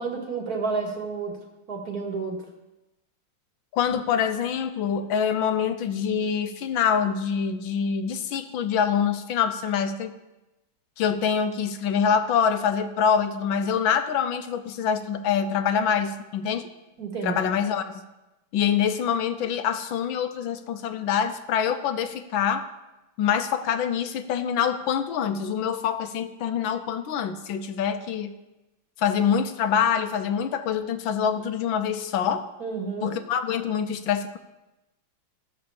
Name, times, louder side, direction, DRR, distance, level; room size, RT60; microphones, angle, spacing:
voice 1, 0.0-1.4 1.7-2.4 17.0-17.4 32.6-33.2, right 4 dB, 50° right, 1 dB, 2.2 m, -30 dB
voice 2, 3.7-10.1 11.0-16.7 17.2-18.0 18.5-22.7 23.2-28.3 29.0-32.5 33.0-34.4, left 7 dB, 75° left, 9 dB, 1.5 m, -25 dB
14.5 x 6.5 x 7.0 m, 1.0 s
omnidirectional pair, 2.2 m